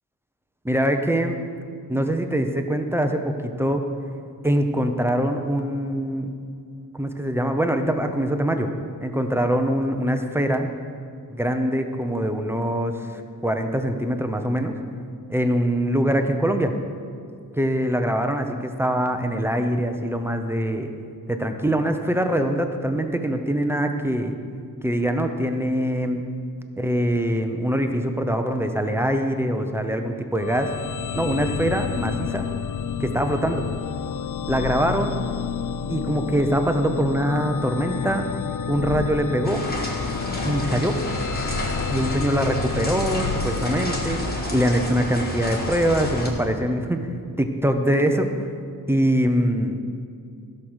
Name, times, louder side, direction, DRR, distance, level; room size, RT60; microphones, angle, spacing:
voice 1, 0.7-1.4 1.9-3.8 4.4-6.3 6.9-8.7 9.0-10.7 11.3-14.8 15.3-16.7 17.6-20.9 21.3-24.3 24.8-26.2 26.8-30.7 31.1-32.5 33.0-33.6 34.5-35.2 35.9-38.2 38.7-39.6 40.4-40.9 41.9-44.2 44.5-47.0 47.4-48.3 48.9-49.8, equal, 5° right, 6 dB, 0.7 m, -23 dB
sound 1, 30.4-45.1, left 7 dB, 55° left, 0.4 m, -30 dB
sound 2, 39.4-46.3, left 1 dB, 25° left, 1.7 m, -30 dB
15.0 x 6.6 x 6.2 m, 2.4 s
wide cardioid pair, 175°, 36 cm